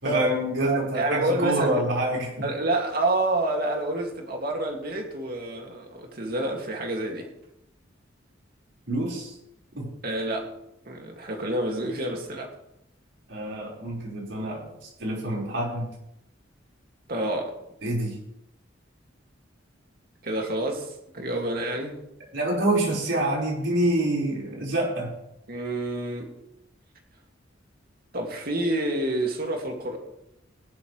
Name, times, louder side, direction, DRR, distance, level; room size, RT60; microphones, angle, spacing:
voice 1, 0.0-2.5 8.9-9.4 9.8-9.9 13.3-15.9 17.8-18.1 22.3-25.1, right 1 dB, 85° right, -3 dB, 5.4 m, -27 dB
voice 2, 0.7-1.8 2.4-7.3 10.0-10.5 10.9-12.5 17.1-17.6 20.2-22.0 25.5-26.3 28.1-30.0, right 1 dB, 50° right, 1 dB, 2.7 m, -28 dB
19.0 x 11.5 x 3.5 m, 0.83 s
head